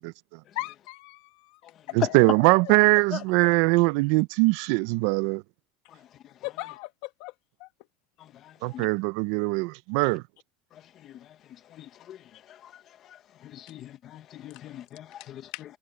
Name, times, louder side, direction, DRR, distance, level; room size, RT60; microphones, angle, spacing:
voice 1, 0.6-1.6 2.0-2.7 6.4-7.3 7.6-7.7 15.5-15.6, left 20 dB, 60° left, 1.8 m, -38 dB
voice 2, 1.9-5.4 8.6-10.2, right 24 dB, 60° right, 0.5 m, -22 dB
voice 3, 11.8-12.2 13.5-15.4, left 11 dB, 35° left, 1.1 m, -41 dB
cardioid pair, 165°, 0 cm